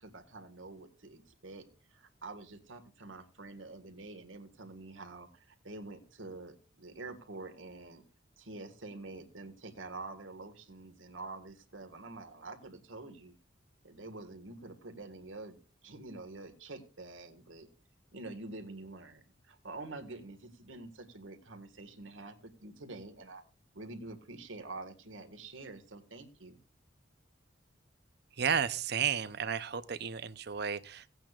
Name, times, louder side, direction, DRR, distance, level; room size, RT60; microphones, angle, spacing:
voice 1, 0.0-8.0 8.4-13.4 13.8-17.7 18.1-23.4 23.7-26.6, right 2 dB, 85° right, 6 dB, 1.8 m, -47 dB
voice 2, 28.4-31.1, right 7 dB, 55° right, 14 dB, 0.7 m, -33 dB
17.5 x 9.0 x 2.5 m, 0.35 s
head